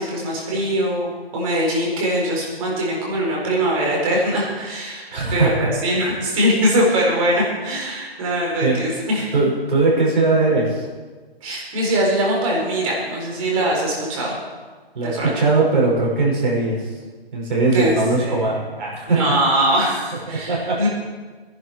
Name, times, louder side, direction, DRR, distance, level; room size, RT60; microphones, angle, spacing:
voice 1, 0.0-9.3 11.4-14.4 15.0-15.3 17.7-17.9 18.2-18.4 19.1-20.9, equal, 35° right, -2 dB, 4.5 m, -22 dB
voice 2, 5.1-5.7 8.6-8.9 9.3-10.9 14.9-16.9 17.3-19.2 20.3-20.8, right 3 dB, 50° right, -3 dB, 5.9 m, -20 dB
19.0 x 11.0 x 4.7 m, 1.4 s
hypercardioid pair, 150°, 31 cm